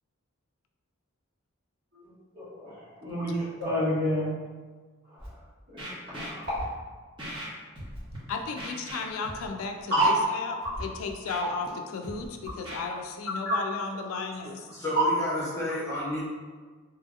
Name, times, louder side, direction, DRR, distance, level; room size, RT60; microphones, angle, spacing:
voice 1, 2.4-2.7 3.0-4.3 5.7-6.5 9.9-10.1 13.5-13.6, equal, 50° right, -11 dB, 1.5 m, -28 dB
Scratching (performance technique), 5.2-5.3 5.8-6.6 7.2-7.5 7.7-8.2 8.6-9.5 10.0-10.1 10.6-10.8 11.1-11.7 12.0-12.8, equal, 20° right, 0.9 m, -39 dB
voice 2, 8.3-14.6, left 4 dB, 80° left, 4 dB, 0.3 m, -34 dB
voice 3, 14.4-16.2, left 1 dB, 15° left, -10 dB, 0.9 m, -32 dB
2.9 x 2.7 x 2.4 m, 1.4 s
head